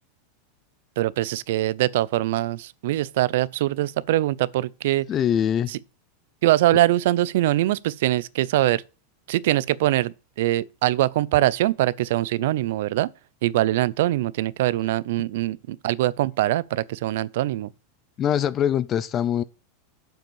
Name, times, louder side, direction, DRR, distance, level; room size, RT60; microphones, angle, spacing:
voice 1, 1.0-5.1 6.4-8.8 9.3-13.1 13.4-17.7, right 15 dB, 70° right, 0.5 m, -23 dB
voice 2, 5.1-5.7 18.2-19.4, left 9 dB, 25° left, 0.4 m, -23 dB
7.7 x 5.2 x 6.8 m
supercardioid pair, 150°, 0 cm